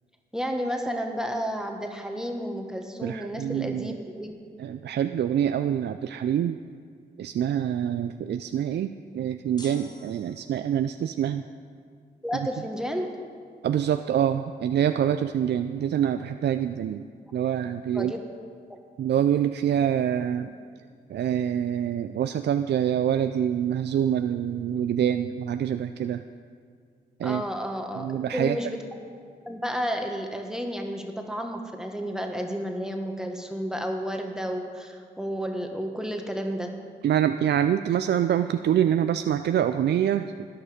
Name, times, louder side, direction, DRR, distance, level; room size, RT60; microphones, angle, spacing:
voice 1, 0.3-4.3 12.2-13.1 17.9-18.2 27.2-28.8 29.4-36.7, equal, 5° right, 3 dB, 1.5 m, -31 dB
voice 2, 3.0-3.9 4.6-6.6 7.2-11.4 13.6-17.0 17.3-18.1 19.0-20.5 21.1-26.2 27.2-27.4 28.0-28.6 37.0-40.5, right 9 dB, 65° right, 9 dB, 0.4 m, -25 dB
sound 1, 9.6-10.9, left 1 dB, 20° left, 1.4 m, -48 dB
13.0 x 9.9 x 5.1 m, 2.2 s
supercardioid pair, 50°, 19 cm